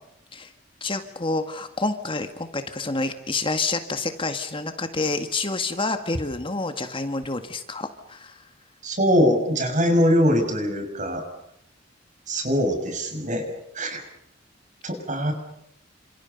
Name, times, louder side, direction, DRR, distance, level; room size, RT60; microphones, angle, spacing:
voice 1, 0.8-8.4, left 3 dB, 30° left, 8 dB, 2.0 m, -28 dB
voice 2, 8.8-11.2 12.3-13.5 13.7-14.0 14.8-15.3, equal, 40° right, 6 dB, 6.6 m, -22 dB
29.5 x 27.0 x 5.4 m, 0.78 s
head